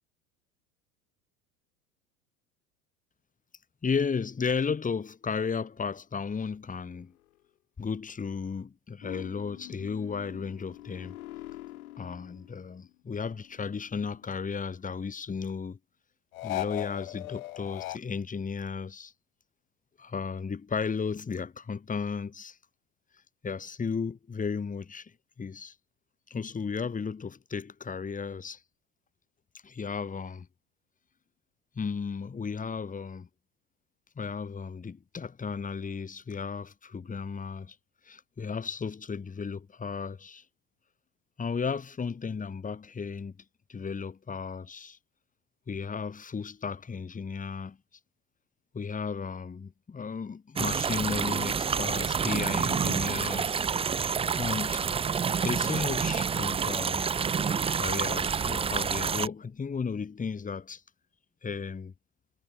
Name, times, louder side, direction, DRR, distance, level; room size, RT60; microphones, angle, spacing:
voice 1, 3.8-7.1 7.8-11.2 12.0-15.8 16.4-19.1 20.0-22.6 23.4-25.7 26.3-28.6 29.6-30.5 31.8-33.3 34.2-37.8 38.0-40.4 41.4-43.4 43.7-45.0 45.7-47.8 48.7-53.6 54.4-54.8 55.4-57.1 57.7-60.8 61.4-61.9, left 5 dB, 20° left, 2.4 m, -34 dB
sound 1, 9.0-12.9 13.2-14.8 16.3-18.0, left 16 dB, 70° left, 1.6 m, -40 dB
sound 2, 50.6-59.3, right 6 dB, 15° right, 0.6 m, -28 dB
hypercardioid pair, 80°, 44 cm